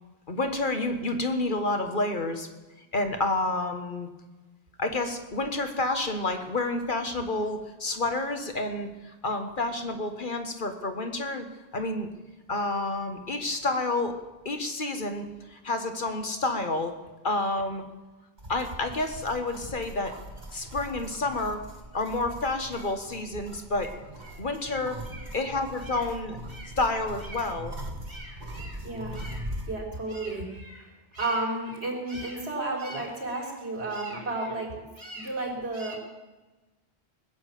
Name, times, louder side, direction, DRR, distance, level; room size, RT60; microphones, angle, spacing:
voice 1, 0.3-2.5 2.9-4.1 4.8-11.5 11.7-12.1 12.5-14.1 14.4-16.9 17.2-17.8 18.5-20.1 20.5-21.6 21.9-24.0 24.4-25.0 25.3-26.4 26.8-27.7, left 2 dB, 50° left, 6 dB, 1.6 m, -29 dB
sound 1, 18.4-29.7, right 1 dB, 45° right, 1.8 m, -41 dB
voice 2, 28.1-36.0, right 2 dB, 90° right, -1 dB, 4.4 m, -34 dB
20.0 x 7.2 x 8.4 m, 1.1 s
omnidirectional pair, 1.1 m